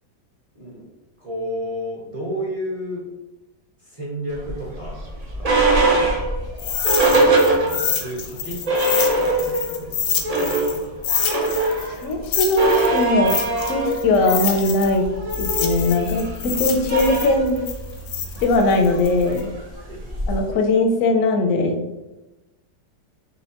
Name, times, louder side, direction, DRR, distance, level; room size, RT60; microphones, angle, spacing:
voice 1, 0.5-0.9 1.2-3.1 3.8-5.0 5.3-6.1 6.8-10.8 19.8-20.0, equal, 30° right, -6 dB, 0.6 m, -33 dB
sound 1, 4.4-8.1 8.4-8.5 8.7-9.7 10.1-20.5, right 2 dB, 70° right, 0.3 m, -22 dB
sound 2, 6.6-10.8 11.0-15.0 15.3-19.4, left 8 dB, 85° left, 1.3 m, -27 dB
voice 2, 11.9-15.1 15.4-17.6 18.4-19.5 20.3-21.8, left 2 dB, 70° left, 4 dB, 0.8 m, -20 dB
4.1 x 3.4 x 2.9 m, 1.0 s
omnidirectional pair, 1.9 m